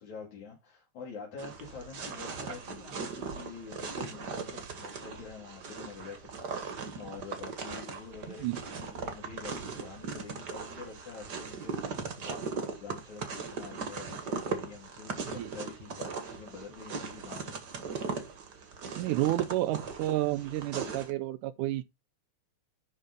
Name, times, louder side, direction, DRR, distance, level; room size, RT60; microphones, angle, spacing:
voice 1, 0.0-6.5 7.0-17.6, left 5 dB, 70° left, 4.0 m, -46 dB
sound 1, 1.4-21.1, right 5 dB, 40° right, 1.8 m, -39 dB
voice 2, 19.0-21.8, right 15 dB, 85° right, 2.2 m, -30 dB
11.0 x 4.1 x 5.2 m
omnidirectional pair, 3.5 m